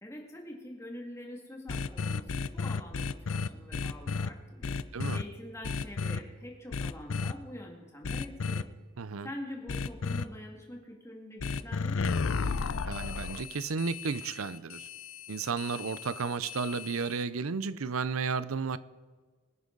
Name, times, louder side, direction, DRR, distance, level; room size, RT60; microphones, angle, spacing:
voice 1, 0.0-4.8 5.1-8.7 9.2-12.3, left 1 dB, 15° left, 0 dB, 2.1 m, -45 dB
sound 1, 1.7-4.3 4.6-5.2 5.6-6.2 6.7-7.3 8.0-8.6 9.7-10.2 11.4-17.2, left 4 dB, 75° left, 0.5 m, -33 dB
voice 2, 9.0-9.3 12.9-14.9 15.3-18.8, right 5 dB, 90° right, 16 dB, 0.6 m, -33 dB
22.5 x 9.9 x 3.9 m, 1.4 s
head